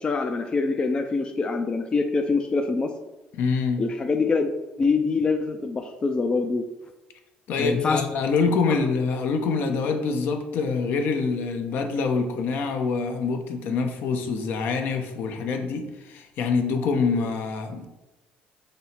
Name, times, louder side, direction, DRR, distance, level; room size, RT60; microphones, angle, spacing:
voice 1, 0.0-2.9 3.8-4.5 4.8-6.7 7.6-8.0, left 4 dB, 25° left, 5 dB, 0.3 m, -24 dB
voice 2, 3.3-3.8 7.5-17.9, left 4 dB, 70° left, 5 dB, 0.6 m, -25 dB
5.2 x 2.0 x 4.2 m, 1.0 s
cardioid pair, 110°, 3 cm